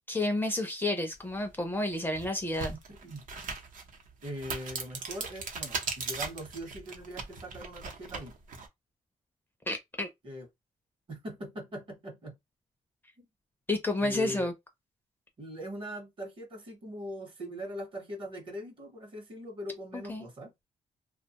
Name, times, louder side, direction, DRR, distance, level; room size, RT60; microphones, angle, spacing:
voice 1, 0.1-2.7 9.7-10.1 13.7-14.5 19.9-20.3, left 2 dB, 15° left, 0.4 m, -30 dB
sound 1, 1.4-1.5 2.0-8.7, right 4 dB, 70° right, 0.7 m, -39 dB
voice 2, 4.2-8.3 10.2-10.5 11.1-12.3 13.2-13.3 14.0-14.5 15.4-20.5, equal, 40° right, 0.8 m, -41 dB
2.7 x 2.1 x 2.8 m
wide cardioid pair, 170°, 14 cm